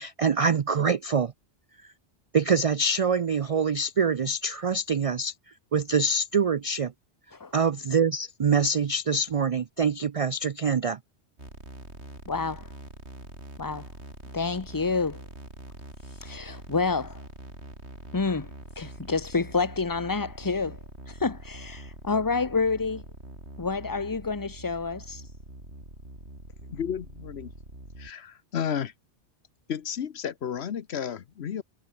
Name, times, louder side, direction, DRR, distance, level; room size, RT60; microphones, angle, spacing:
voice 1, 0.0-1.3 2.3-5.3 5.7-6.9 7.5-11.0, right 4 dB, 50° right, 0.4 m, -25 dB
sound 1, 11.4-28.1, right 1 dB, 70° right, 7.8 m, -44 dB
voice 2, 12.3-12.7 13.6-13.9 14.3-15.2 16.2-17.2 18.1-20.8 21.1-23.0 23.6-25.2, left 4 dB, 20° left, 0.8 m, -28 dB
voice 3, 26.7-27.5 28.0-28.9 29.7-31.6, left 8 dB, 70° left, 1.1 m, -32 dB
omnidirectional pair, 1.2 m